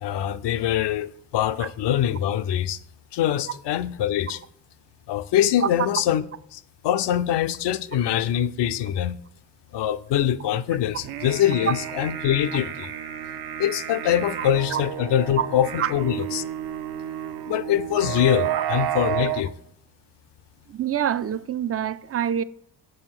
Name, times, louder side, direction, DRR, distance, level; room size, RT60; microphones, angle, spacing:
voice 1, 0.0-2.8 3.1-4.4 5.1-6.2 6.5-9.2 9.7-12.9 13.6-16.4 17.5-19.5, left 11 dB, 70° left, 0.6 m, -24 dB
sound 1, 11.0-19.4, right 11 dB, 60° right, 0.7 m, -31 dB
voice 2, 14.4-14.8 15.4-15.5 15.8-15.9 18.4-18.6 20.7-22.4, right 9 dB, 35° right, 0.4 m, -26 dB
7.8 x 4.8 x 5.9 m
cardioid pair, 80°, 43 cm